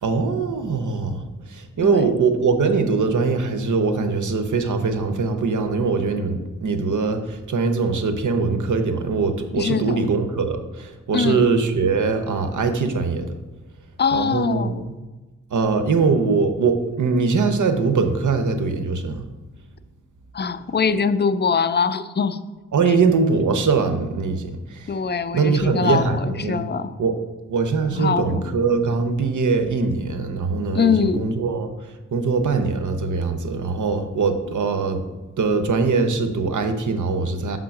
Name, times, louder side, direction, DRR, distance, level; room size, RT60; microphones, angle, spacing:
voice 1, 0.0-13.3 14.1-14.9 15.5-19.3 22.7-24.9 25.3-26.7 27.0-27.2 27.5-31.7 32.1-35.0 35.4-37.6, right 4 dB, 75° right, 7 dB, 0.7 m, -22 dB
voice 2, 9.6-10.1 11.1-11.5 14.0-14.9 20.3-22.4 24.9-27.0 27.9-28.4 30.7-31.3, left 6 dB, 35° left, 13 dB, 0.4 m, -22 dB
6.2 x 3.7 x 5.9 m, 1.2 s
wide cardioid pair, 85°, 31 cm